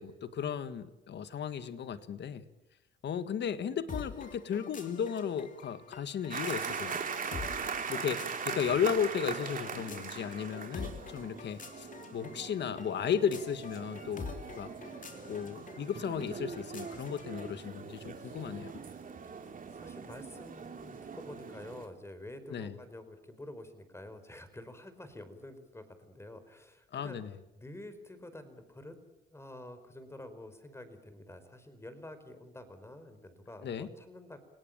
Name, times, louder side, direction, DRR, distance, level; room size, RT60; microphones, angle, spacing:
voice 1, 0.0-2.4 3.0-7.0 7.9-14.3 14.6-14.7 15.3-18.7 22.5-22.7 26.9-27.3 33.6-33.9, left 7 dB, 60° left, 12 dB, 1.7 m, -35 dB
sound 1, 3.9-17.6, left 5 dB, 40° left, 3.3 m, -47 dB
sound 2, 6.3-21.9, right 6 dB, 45° right, 3.5 m, -41 dB
voice 2, 17.2-18.4 19.7-27.2 27.5-28.9 29.3-34.4, left 1 dB, 15° left, 10 dB, 4.8 m, -49 dB
29.5 x 18.5 x 9.0 m, 0.95 s
cardioid pair, 90°, 20 cm